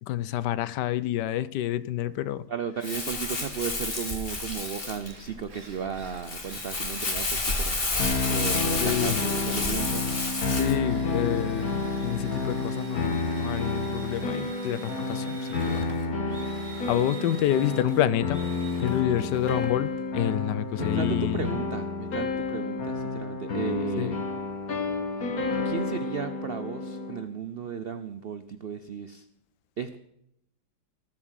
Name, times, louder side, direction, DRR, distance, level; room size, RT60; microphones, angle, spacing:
voice 1, 0.0-2.4 8.6-9.2 10.5-15.9 16.4-16.6 16.9-18.4 18.8-21.5 24.0-24.1, left 12 dB, 85° left, 17 dB, 1.3 m, -28 dB
Drill, 2.3-2.4 2.8-20.9, right 3 dB, 50° right, 2.0 m, -46 dB
voice 2, 2.5-7.8 8.3-10.0 20.8-24.2 25.6-29.2 29.8-30.0, right 7 dB, 75° right, 11 dB, 0.5 m, -35 dB
Crumpling crinkling, 2.8-10.8, left 3 dB, 35° left, 2.0 m, -30 dB
sound 1, 8.0-27.2, left 3 dB, 60° left, 1.9 m, -30 dB
18.5 x 7.4 x 6.3 m, 0.79 s
omnidirectional pair, 1.8 m